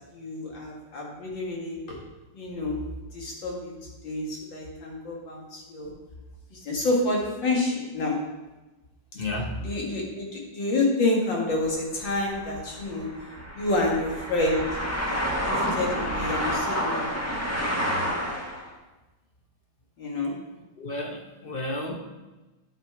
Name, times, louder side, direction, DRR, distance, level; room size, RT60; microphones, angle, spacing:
voice 1, 0.1-2.0 2.3-2.8 3.1-3.7 4.0-5.9 6.5-8.2 9.6-13.1 13.5-14.7 15.0-17.4 20.0-20.3, left 2 dB, 90° left, -2 dB, 2.7 m, -28 dB
voice 2, 9.1-9.6 20.8-22.0, left 1 dB, 40° left, 1 dB, 0.8 m, -32 dB
sound 1, 11.5-18.7, equal, 10° left, 0.8 m, -29 dB
10.0 x 5.9 x 4.6 m, 1.1 s
omnidirectional pair, 2.0 m